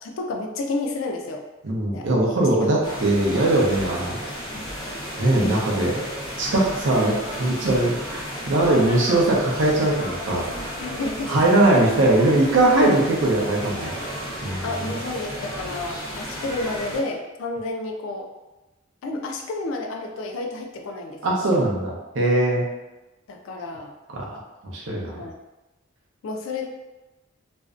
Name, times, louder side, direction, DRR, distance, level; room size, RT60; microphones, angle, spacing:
voice 1, 0.0-1.4 1.9-2.1 2.4-2.6 5.4-5.6 10.8-11.5 14.6-18.3 19.0-21.2 23.3-23.9 25.1-25.3 26.2-26.7, left 2 dB, 75° left, 3 dB, 0.3 m, -30 dB
voice 2, 1.6-4.2 5.2-5.9 6.4-10.5 11.3-14.2 14.4-14.7 21.2-22.7 24.1-24.3 24.6-25.2, right 2 dB, 65° right, -2 dB, 0.5 m, -20 dB
sound 1, 2.8-17.0, equal, 25° left, 0.7 m, -33 dB
2.5 x 2.0 x 2.3 m, 1.1 s
head